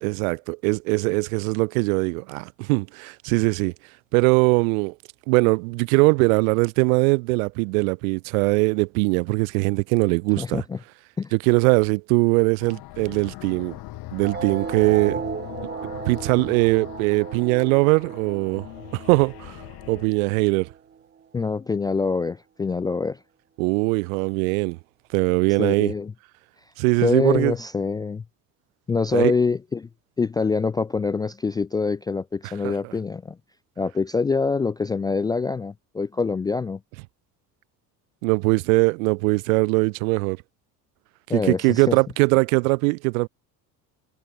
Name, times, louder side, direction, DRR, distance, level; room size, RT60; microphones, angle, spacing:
voice 1, 0.0-3.7 4.1-4.9 5.3-10.6 11.3-13.8 14.1-15.2 16.1-18.7 18.9-19.6 19.9-20.7 23.6-24.8 25.1-25.9 26.8-27.5 29.1-29.3 32.6-32.7 38.2-40.4 41.3-43.3, right 29 dB, 55° right, 0.6 m, -21 dB
voice 2, 10.4-10.8 11.2-11.3 21.3-23.2 25.6-26.1 27.0-28.2 28.9-29.9 30.2-33.4 33.8-36.8 41.3-42.0, left 4 dB, 10° left, 0.3 m, -25 dB
sound 1, 12.6-20.1, left 19 dB, 45° left, 1.4 m, -40 dB
sound 2, 14.2-21.2, right 7 dB, 20° right, 1.1 m, -36 dB
figure-of-eight pair, 60°, 49 cm